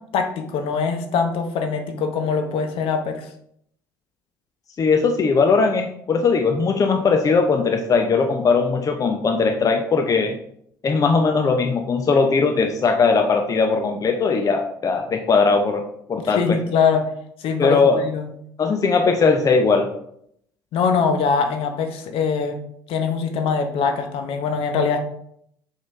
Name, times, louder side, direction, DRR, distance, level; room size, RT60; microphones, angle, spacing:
voice 1, 0.1-3.3 16.2-17.0 17.4-18.3 20.7-22.6 22.9-25.0, left 5 dB, 55° left, 6 dB, 0.9 m, -22 dB
voice 2, 4.8-10.4 10.8-15.8 16.1-16.6 17.6-18.0 18.6-19.9, left 4 dB, 30° left, 5 dB, 0.7 m, -19 dB
5.5 x 5.1 x 3.5 m, 0.71 s
figure-of-eight pair, 55°, 11 cm